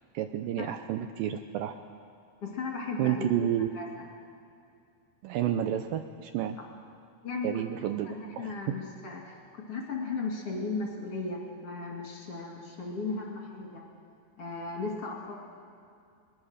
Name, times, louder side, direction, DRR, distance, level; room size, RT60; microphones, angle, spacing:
voice 1, 0.1-1.8 3.0-3.7 5.2-6.6 7.4-8.5, right 10 dB, 75° right, 8 dB, 2.2 m, -30 dB
voice 2, 2.4-3.3 3.7-3.9 7.2-7.6 8.0-13.8 14.4-15.3, left 3 dB, 40° left, -1 dB, 3.4 m, -36 dB
22.5 x 21.0 x 6.5 m, 2.4 s
omnidirectional pair, 4.5 m